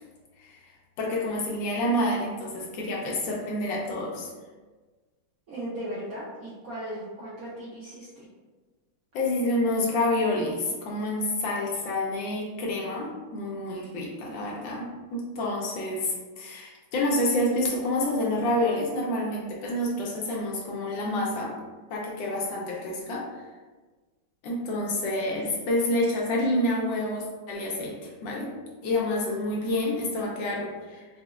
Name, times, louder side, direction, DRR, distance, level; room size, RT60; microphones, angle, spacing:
voice 1, 1.0-4.3 9.1-21.5 21.9-23.3 24.4-28.5 28.8-31.1, left 1 dB, 75° left, -2 dB, 1.2 m, -28 dB
voice 2, 5.5-8.3, right 1 dB, 70° right, -8 dB, 0.8 m, -37 dB
5.0 x 2.1 x 2.3 m, 1.3 s
omnidirectional pair, 2.2 m